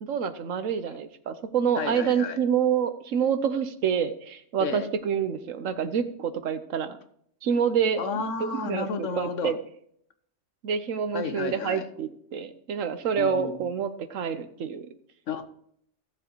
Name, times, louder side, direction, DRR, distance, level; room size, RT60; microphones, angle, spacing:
voice 1, 0.0-7.0 7.4-8.0 8.4-9.6 10.6-14.9, right 7 dB, 90° right, 11 dB, 1.2 m, -27 dB
voice 2, 1.8-2.4 4.6-4.9 8.0-9.5 11.1-11.8 13.2-13.7 15.3-15.4, left 5 dB, 75° left, 9 dB, 1.3 m, -32 dB
16.5 x 7.3 x 3.0 m, 0.69 s
omnidirectional pair, 1.3 m